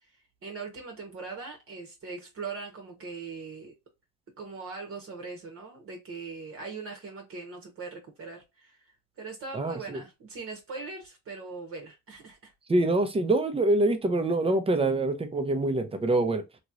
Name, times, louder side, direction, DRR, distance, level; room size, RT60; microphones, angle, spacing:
voice 1, 0.4-3.7 4.4-8.8 9.2-12.5, right 4 dB, 40° right, 1.0 m, -40 dB
voice 2, 9.5-10.0 12.7-16.4, right 2 dB, 15° right, 0.7 m, -25 dB
3.0 x 2.9 x 2.5 m
cardioid pair, 120°, 33 cm